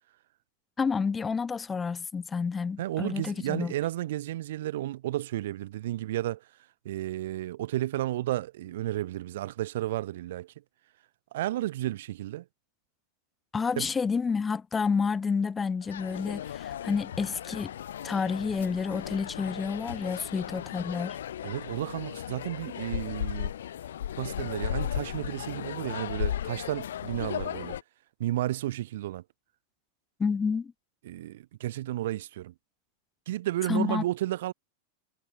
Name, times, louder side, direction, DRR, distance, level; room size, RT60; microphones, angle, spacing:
voice 1, 0.8-3.7 13.5-17.7 18.0-21.2 30.2-30.7 33.7-34.0, left 5 dB, 15° left, 2.8 m, -29 dB
voice 2, 2.8-6.4 6.8-10.5 11.3-12.4 13.8-13.9 21.4-23.5 24.2-27.8 28.2-29.2 31.0-32.5 33.3-34.5, right 14 dB, 55° right, 2.1 m, -32 dB
sound 1, 15.8-27.8, left 10 dB, 60° left, 4.3 m, -36 dB
figure-of-eight pair, 90°, 0 cm